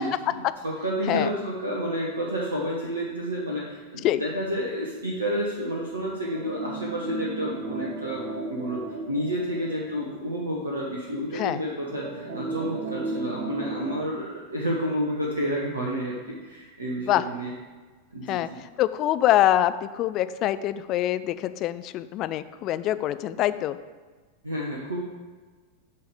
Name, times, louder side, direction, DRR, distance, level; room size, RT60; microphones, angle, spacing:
voice 1, 0.0-8.3 8.5-8.8 9.1-17.5 18.1-18.4 24.4-25.0, equal, 75° right, -3 dB, 1.0 m, -30 dB
sound 1, 6.3-10.7 11.1-11.2 11.9-14.0, right 2 dB, 45° right, 1.4 m, -34 dB
voice 2, 18.8-23.8, left 13 dB, 35° left, 13 dB, 0.3 m, -24 dB
9.5 x 3.4 x 6.8 m, 1.4 s
figure-of-eight pair, 90°, 0 cm